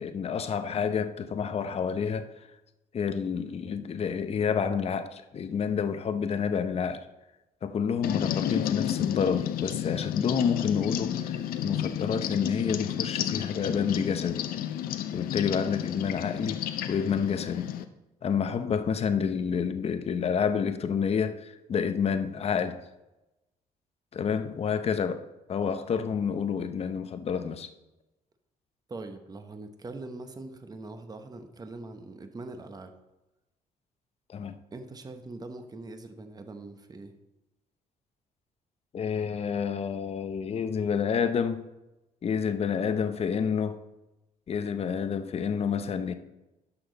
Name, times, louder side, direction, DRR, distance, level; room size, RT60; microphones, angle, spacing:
voice 1, 0.0-2.3 2.9-7.0 7.6-14.4 15.1-17.7 18.2-22.8 24.1-25.2 25.5-27.7 34.3-34.6 38.9-41.7 42.2-43.8 44.5-46.1, left 6 dB, 45° left, 10 dB, 0.8 m, -29 dB
sound 1, 8.0-17.8, left 10 dB, 80° left, 0.6 m, -31 dB
voice 2, 28.9-32.9 34.7-37.2, right 2 dB, 25° right, 7 dB, 1.0 m, -42 dB
11.5 x 6.2 x 4.0 m, 0.99 s
cardioid pair, 100°, 15 cm